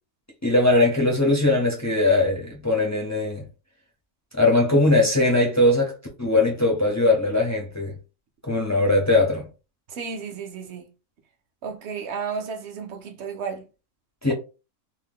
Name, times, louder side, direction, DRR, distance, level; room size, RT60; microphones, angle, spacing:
voice 1, 0.4-3.4 4.3-7.9 8.4-9.5 14.2-14.3, left 2 dB, 25° left, 0.4 m, -20 dB
voice 2, 9.9-10.9 11.6-13.7, right 6 dB, 60° right, 0.8 m, -33 dB
2.7 x 2.1 x 3.5 m
omnidirectional pair, 1.5 m